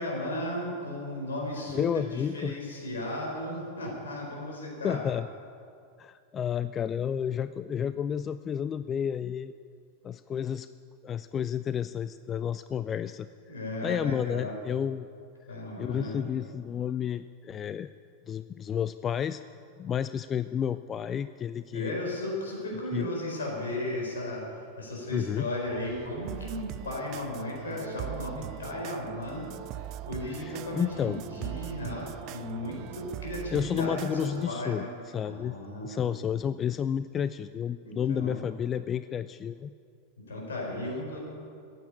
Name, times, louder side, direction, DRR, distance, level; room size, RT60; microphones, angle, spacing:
voice 1, 0.0-5.0 13.5-14.6 15.5-16.2 21.7-34.9 35.2-36.2 37.8-38.4 40.3-41.2, left 1 dB, 70° left, -1 dB, 4.7 m, -35 dB
voice 2, 1.7-2.6 4.8-5.3 6.0-9.5 10.0-10.7 11.0-13.3 13.8-15.1 15.8-17.9 18.3-19.4 19.8-21.9 22.9-23.1 25.1-25.5 30.4-31.2 33.5-34.9 35.1-35.6 35.8-39.7, left 8 dB, 25° left, 14 dB, 0.3 m, -31 dB
sound 1, 25.6-34.5, right 13 dB, 40° right, 0.4 m, -41 dB
15.0 x 9.2 x 8.7 m, 2.4 s
figure-of-eight pair, 90°, 0 cm